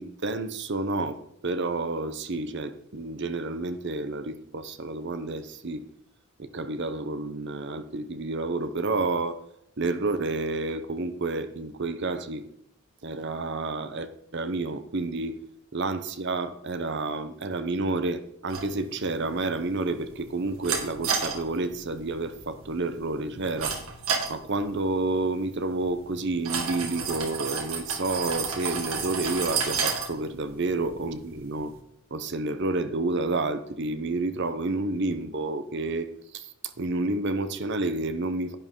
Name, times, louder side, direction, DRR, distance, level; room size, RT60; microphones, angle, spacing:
voice 1, 0.0-5.9 6.4-9.4 9.8-12.4 13.0-15.4 15.7-23.8 24.3-31.7 32.1-38.6, right 2 dB, 50° right, 0.7 m, -30 dB
sound 1, 18.5-31.8, right 5 dB, 75° right, 1.9 m, -33 dB
11.0 x 9.0 x 3.7 m
head